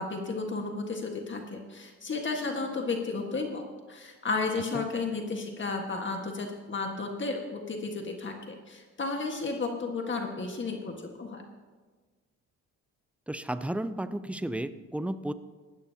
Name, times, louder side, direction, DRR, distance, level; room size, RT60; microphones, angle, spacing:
voice 1, 0.0-11.4, left 3 dB, 40° left, 2 dB, 1.6 m, -33 dB
voice 2, 13.3-15.3, right 1 dB, 5° right, 12 dB, 0.5 m, -33 dB
18.0 x 13.0 x 2.8 m, 1.4 s
cardioid pair, 90°, 30 cm